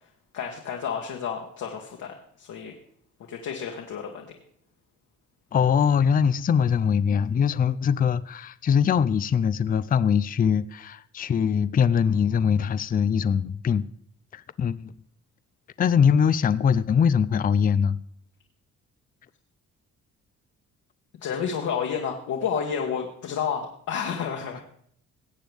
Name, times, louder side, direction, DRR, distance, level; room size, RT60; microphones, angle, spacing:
voice 1, 0.3-2.7 3.3-4.3 21.2-24.6, left 7 dB, 75° left, 1.6 m, -30 dB
voice 2, 5.5-13.9 14.3-14.9 15.8-18.0, left 7 dB, 30° left, 0.4 m, -22 dB
18.5 x 7.8 x 3.5 m
cardioid pair, 90°, 30 cm